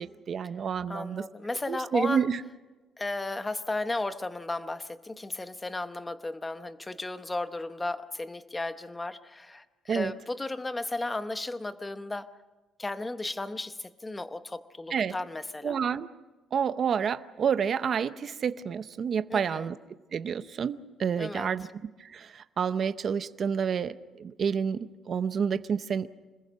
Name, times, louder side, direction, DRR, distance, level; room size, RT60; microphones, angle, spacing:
voice 1, 0.0-1.2 1.7-2.4 9.9-10.1 14.9-15.1 15.6-16.1 16.5-19.8 20.1-21.7 22.1-26.1, right 7 dB, 40° right, 12 dB, 0.6 m, -29 dB
voice 2, 0.9-2.3 3.0-12.3 12.8-15.8 19.3-19.7 21.2-21.7, left 2 dB, 15° left, 11 dB, 0.8 m, -34 dB
26.5 x 20.5 x 6.3 m, 1.2 s
cardioid pair, 165°, 0 cm